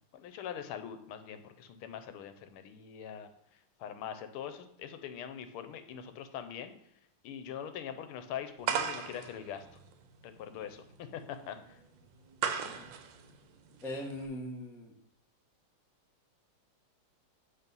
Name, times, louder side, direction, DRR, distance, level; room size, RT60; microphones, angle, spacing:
voice 1, 0.1-3.3 3.8-6.7 7.2-9.7 10.2-11.8, left 9 dB, 90° left, 9 dB, 1.6 m, -42 dB
sound 1, 8.6-14.3, right 7 dB, 70° right, 1.3 m, -38 dB
voice 2, 13.8-14.9, left 1 dB, 5° left, 0 dB, 0.3 m, -40 dB
8.3 x 3.6 x 5.3 m, 0.74 s
omnidirectional pair, 2.3 m